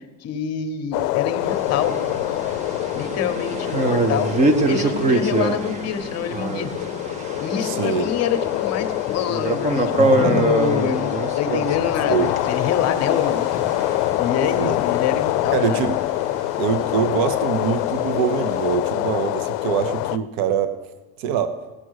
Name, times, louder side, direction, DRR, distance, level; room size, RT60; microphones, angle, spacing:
voice 1, 0.0-1.9 2.9-4.3 4.7-6.7 7.4-13.6 14.2-15.8, left 7 dB, 35° left, 8 dB, 0.9 m, -26 dB
sound 1, 0.9-20.2, left 18 dB, 80° left, 0.5 m, -25 dB
sound 2, 1.4-18.8, right 2 dB, 15° right, 0.4 m, -26 dB
voice 2, 7.6-8.1 10.0-10.5 12.1-12.3 14.5-14.8 15.5-16.0 16.6-20.7 21.2-21.6, right 7 dB, 50° right, 11 dB, 0.8 m, -24 dB
17.0 x 6.0 x 6.4 m, 1.2 s
cardioid pair, 150°, 47 cm